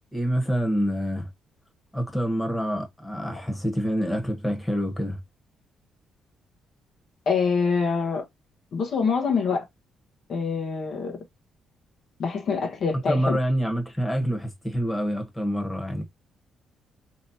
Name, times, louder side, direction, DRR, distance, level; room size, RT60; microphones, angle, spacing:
voice 1, 0.1-1.3 1.9-5.2 13.1-16.0, equal, 5° left, 1.1 m, -26 dB
voice 2, 7.3-8.2 8.7-9.6 10.3-11.2 12.2-13.4, left 5 dB, 60° left, 0.9 m, -25 dB
3.1 x 2.9 x 2.7 m
cardioid pair, 90°, 0 cm